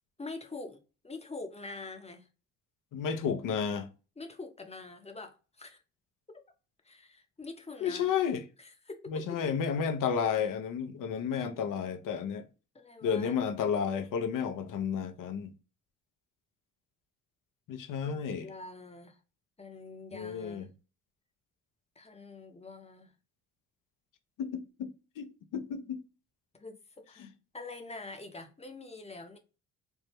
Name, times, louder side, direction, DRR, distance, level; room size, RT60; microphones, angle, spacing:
voice 1, 0.2-2.3 4.2-5.8 6.3-6.4 6.8-8.1 8.6-9.5 12.7-13.4 18.0-19.2 19.6-20.7 22.0-23.1 26.6-29.4, left 3 dB, 15° left, 0.8 m, -45 dB
voice 2, 2.9-3.9 7.8-8.4 9.1-12.4 13.0-15.5 17.7-18.4 20.1-20.7 24.4-26.0, left 7 dB, 60° left, 0.7 m, -32 dB
3.4 x 2.1 x 3.0 m
supercardioid pair, 55°, 36 cm